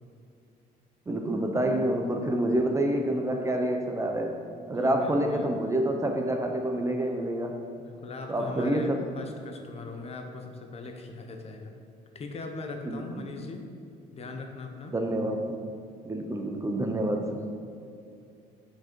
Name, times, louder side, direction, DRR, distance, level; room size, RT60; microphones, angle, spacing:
voice 1, 1.1-4.4 4.7-7.6 8.3-9.0 12.8-13.3 14.9-15.5 16.0-17.5, right 1 dB, 15° right, 3 dB, 0.6 m, -28 dB
voice 2, 4.7-5.5 7.8-11.7 12.1-13.6 14.1-14.9, left 3 dB, 35° left, 4 dB, 0.8 m, -40 dB
6.1 x 5.0 x 4.4 m, 2.5 s
cardioid pair, 110°, 17 cm